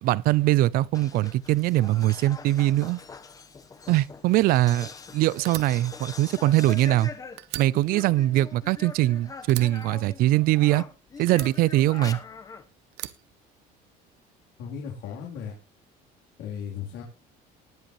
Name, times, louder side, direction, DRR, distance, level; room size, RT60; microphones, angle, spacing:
voice 1, 0.0-3.0 3.9-7.1 7.6-10.8 11.2-12.2, right 16 dB, 60° right, 0.5 m, -22 dB
sound 1, 0.9-10.2 10.5-12.6, left 5 dB, 20° left, 1.1 m, -43 dB
Fire, 5.5-7.1 7.4-9.1 9.5-10.8 11.3-12.4 12.9-14.1, right 16 dB, 80° right, 1.0 m, -40 dB
voice 2, 14.6-15.6 16.4-17.0, left 7 dB, 80° left, 3.6 m, -36 dB
20.0 x 7.9 x 3.1 m
cardioid pair, 150°, 17 cm